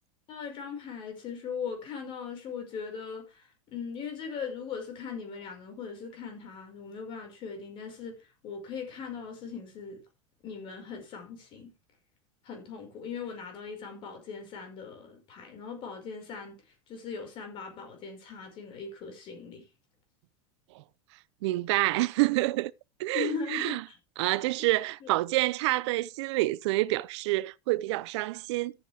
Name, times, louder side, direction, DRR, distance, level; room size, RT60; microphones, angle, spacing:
voice 1, 0.3-10.0 10.4-11.7 12.4-19.7 23.1-23.9 25.0-25.1, left 6 dB, 35° left, 5.5 m, -39 dB
voice 2, 21.4-22.7 23.0-23.8 24.2-28.7, right 19 dB, 65° right, 0.7 m, -27 dB
13.5 x 8.8 x 3.5 m
supercardioid pair, 165°, 16 cm